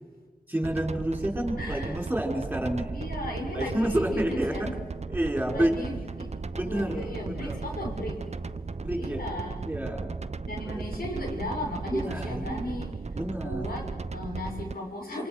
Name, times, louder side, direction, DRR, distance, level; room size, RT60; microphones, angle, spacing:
voice 1, 0.5-2.9 3.5-4.5 5.1-5.7 6.5-7.6 8.8-9.2 9.7-10.2 10.5-11.4 11.9-12.6 13.2-13.6, right 1 dB, 10° right, 2 dB, 5.6 m, -29 dB
sound 1, 0.6-14.7, right 4 dB, 45° right, 0.8 m, -36 dB
voice 2, 1.6-2.0 2.9-4.8 5.5-6.3 6.6-8.2 9.0-9.7 10.4-12.9 13.4-15.3, left 1 dB, 90° left, 0 dB, 6.2 m, -36 dB
28.0 x 26.0 x 6.2 m, 1.4 s
cardioid pair, 50°, 15 cm